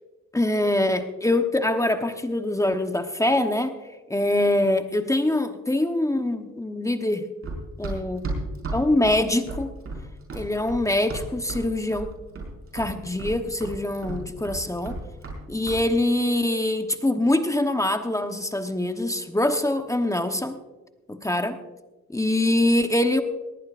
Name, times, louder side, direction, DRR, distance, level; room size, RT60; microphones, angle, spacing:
voice 1, 0.3-3.8 4.1-7.3 7.8-8.2 8.7-9.7 10.3-12.1 12.7-15.0 15.5-20.6 21.1-21.6 22.1-23.2, left 1 dB, 10° left, 7 dB, 1.0 m, -24 dB
Run, 7.4-11.7 11.9-12.5 12.8-15.4 15.7-15.8, right 2 dB, 45° right, 5.5 m, -33 dB
19.5 x 18.0 x 2.5 m, 1.2 s
cardioid pair, 90°, 30 cm